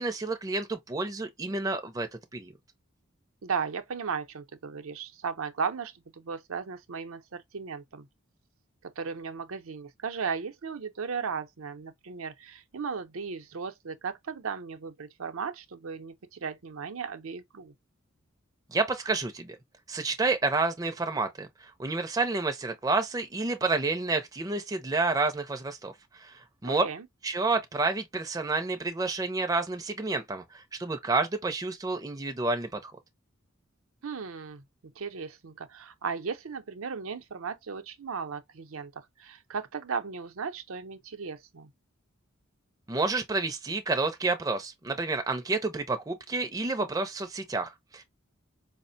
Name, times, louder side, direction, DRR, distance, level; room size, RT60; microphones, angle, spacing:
voice 1, 0.0-2.5 18.7-19.6 19.9-26.8 27.2-32.9 42.9-48.0, right 3 dB, 15° right, 0.5 m, -29 dB
voice 2, 3.4-8.1 8.8-17.7 26.7-27.1 34.0-34.6 35.0-41.7, right 5 dB, 80° right, 0.6 m, -36 dB
4.9 x 2.1 x 2.6 m
head